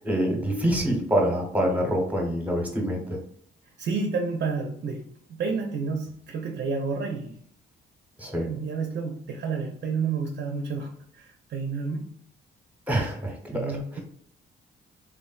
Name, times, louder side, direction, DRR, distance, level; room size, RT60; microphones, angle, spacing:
voice 1, 0.0-3.2 8.2-8.5 12.9-13.7, equal, 5° right, 0 dB, 0.9 m, -26 dB
voice 2, 3.8-7.3 8.4-12.1 13.5-14.0, right 4 dB, 60° right, 3 dB, 0.5 m, -30 dB
3.4 x 2.1 x 2.3 m, 0.62 s
cardioid pair, 90°, 20 cm